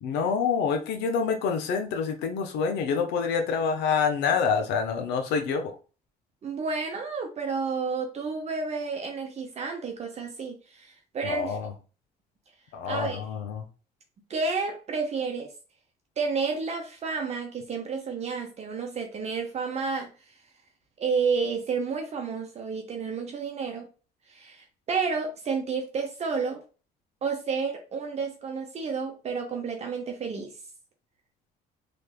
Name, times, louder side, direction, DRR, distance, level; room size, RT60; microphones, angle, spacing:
voice 1, 0.0-5.7 11.2-11.7 12.7-13.7, left 6 dB, 85° left, 5 dB, 0.7 m, -27 dB
voice 2, 6.4-11.6 12.8-13.2 14.3-15.5 16.2-20.1 21.0-23.9 24.3-26.6 27.2-30.5, right 5 dB, 40° right, 3 dB, 0.7 m, -30 dB
3.4 x 3.2 x 2.3 m, 0.35 s
cardioid pair, 110°, 17 cm